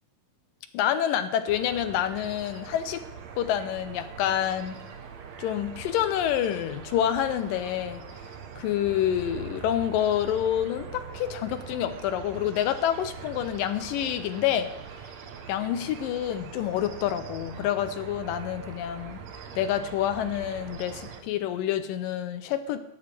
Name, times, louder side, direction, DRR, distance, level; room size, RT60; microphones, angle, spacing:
voice 1, 0.7-3.0 3.4-4.8 5.4-8.1 8.6-14.7 15.5-19.2 19.6-22.8, left 10 dB, 80° left, 10 dB, 2.2 m, -28 dB
sound 1, 1.5-21.2, right 7 dB, 65° right, 1.8 m, -42 dB
19.0 x 9.6 x 3.4 m, 0.87 s
omnidirectional pair, 4.2 m